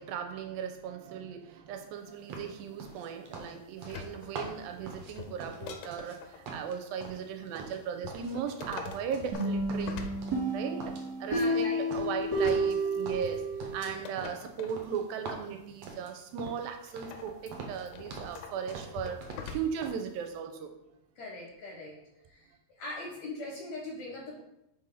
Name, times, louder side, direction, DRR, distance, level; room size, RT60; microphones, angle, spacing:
voice 1, 0.0-10.0 10.5-13.4 13.7-19.2 19.5-20.7, right 7 dB, 85° right, 6 dB, 2.3 m, -37 dB
sound 1, 2.3-6.2 6.4-8.4 8.6-9.4 9.7-10.5 10.8-12.8 13.1-16.7 17.0-17.2 17.5-18.4 18.7-19.5 19.8-20.0, right 4 dB, 70° right, 1.6 m, -44 dB
sound 2, 3.8-6.5 8.0-10.8 12.2-14.8 16.9-20.0 20.3-20.4, left 5 dB, 90° left, 2.4 m, -45 dB
sound 3, 9.3-14.0, right 1 dB, 35° right, 2.3 m, -31 dB
voice 2, 11.3-11.8 21.2-21.9 22.3-22.4 22.8-24.4, left 2 dB, 70° left, 0 dB, 1.7 m, -40 dB
6.0 x 4.1 x 5.2 m, 0.84 s
omnidirectional pair, 4.2 m